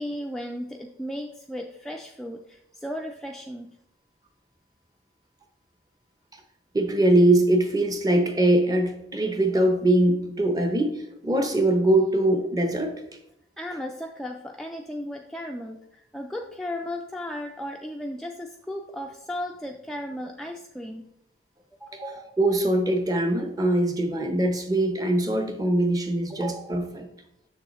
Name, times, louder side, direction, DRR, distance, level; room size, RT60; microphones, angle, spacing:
voice 1, 0.0-3.8 13.6-21.1 21.8-22.0, left 1 dB, 5° left, 1 dB, 0.3 m, -35 dB
voice 2, 6.7-13.0 21.9-27.1, right 1 dB, 20° right, 6 dB, 0.7 m, -22 dB
7.1 x 6.6 x 3.0 m, 0.82 s
head